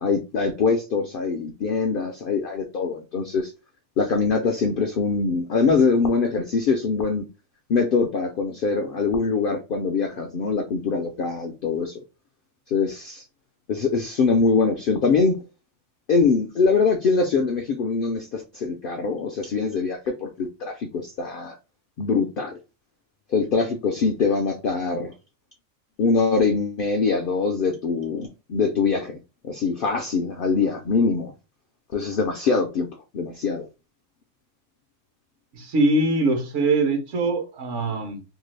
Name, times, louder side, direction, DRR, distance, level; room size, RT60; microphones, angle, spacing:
voice 1, 0.0-3.5 4.0-7.2 7.7-12.0 12.7-13.2 13.7-15.4 16.1-21.6 22.0-22.6 23.3-25.1 26.0-29.2 29.4-31.3 31.9-32.9 33.1-33.7, left 4 dB, 70° left, 0.5 m, -23 dB
voice 2, 35.5-38.2, right 2 dB, 65° right, 1.0 m, -22 dB
2.7 x 2.3 x 3.1 m
omnidirectional pair, 1.4 m